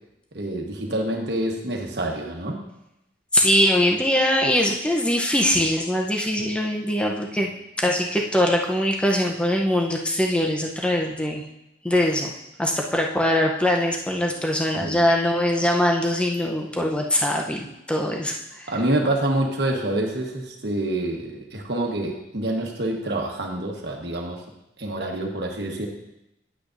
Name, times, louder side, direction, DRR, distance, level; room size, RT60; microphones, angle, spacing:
voice 1, 0.3-2.6 14.7-15.0 18.7-24.4 24.8-25.9, right 1 dB, 60° right, 1 dB, 1.2 m, -27 dB
voice 2, 3.3-7.5 7.8-11.4 11.8-12.3 12.6-18.7, left 1 dB, 5° left, 0 dB, 0.7 m, -22 dB
9.9 x 8.7 x 2.6 m, 0.87 s
head